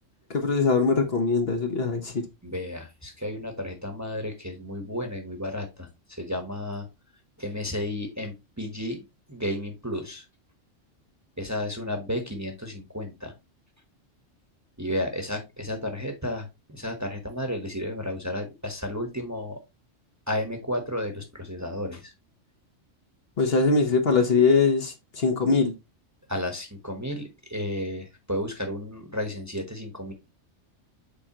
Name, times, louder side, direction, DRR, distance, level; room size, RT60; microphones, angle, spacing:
voice 1, 0.3-2.2 23.4-25.7, left 4 dB, 55° left, 1.3 m, -22 dB
voice 2, 2.4-6.9 7.4-10.2 11.4-13.3 14.8-19.6 20.3-22.1 26.3-30.1, left 1 dB, 15° right, 1.1 m, -32 dB
7.0 x 5.0 x 2.9 m
omnidirectional pair, 1.3 m